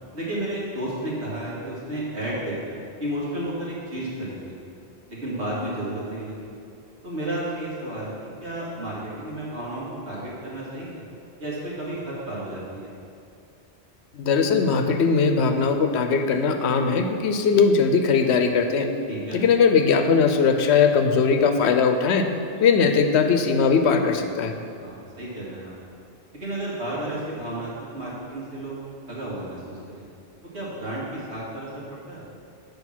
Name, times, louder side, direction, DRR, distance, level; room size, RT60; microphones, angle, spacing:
voice 1, 0.1-4.5 5.1-6.5 7.0-8.1 8.4-11.0 11.4-12.9 19.1-19.4 24.8-25.8 26.3-28.8 29.1-30.0 30.5-32.2, right 1 dB, 75° right, -7 dB, 2.5 m, -32 dB
voice 2, 14.1-18.9 19.3-22.3 22.6-24.5, left 5 dB, 75° left, 7 dB, 0.9 m, -20 dB
8.1 x 5.1 x 6.0 m, 2.5 s
omnidirectional pair, 1.1 m